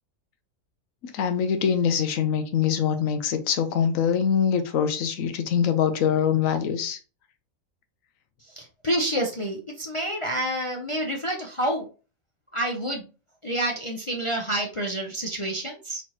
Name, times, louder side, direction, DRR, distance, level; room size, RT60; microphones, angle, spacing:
voice 1, 1.0-7.0, left 7 dB, 65° left, 1.1 m, -24 dB
voice 2, 8.4-11.9 12.5-13.1 13.4-16.0, right 1 dB, 40° left, 0.4 m, -28 dB
4.2 x 4.2 x 2.9 m
omnidirectional pair, 1.6 m